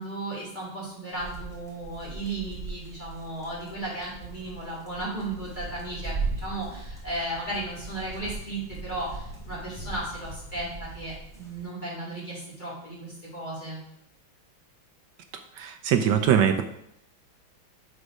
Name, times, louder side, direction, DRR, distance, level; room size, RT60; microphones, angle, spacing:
voice 1, 0.0-13.8, right 2 dB, 20° left, -6 dB, 2.3 m, -35 dB
sound 1, 1.1-11.6, right 3 dB, ahead, 2.0 m, -39 dB
voice 2, 15.6-16.6, right 9 dB, 75° right, 7 dB, 1.1 m, -22 dB
6.4 x 5.2 x 4.8 m, 0.75 s
omnidirectional pair, 2.3 m